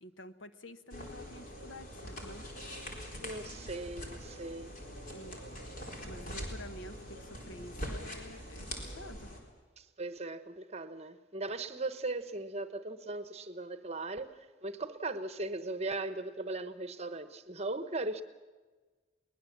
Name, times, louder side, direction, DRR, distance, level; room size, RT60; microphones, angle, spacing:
voice 1, 0.0-2.5 5.1-5.4 6.0-9.3, left 1 dB, 75° left, 1.1 m, -49 dB
sound 1, 0.9-9.4, equal, 45° left, 4.1 m, -43 dB
voice 2, 3.2-4.8 9.8-18.2, right 2 dB, 35° right, 1.0 m, -38 dB
23.0 x 19.5 x 7.4 m
head